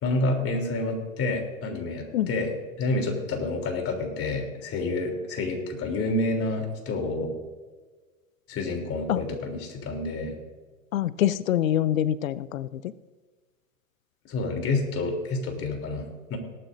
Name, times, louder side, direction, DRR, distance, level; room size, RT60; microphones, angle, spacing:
voice 1, 0.0-2.5 2.8-7.3 8.5-10.3 14.3-16.4, left 2 dB, 35° left, 2 dB, 3.4 m, -28 dB
voice 2, 10.9-12.8, left 11 dB, 85° left, 17 dB, 0.7 m, -25 dB
18.5 x 12.0 x 2.7 m, 1.4 s
hypercardioid pair, 100°, 39 cm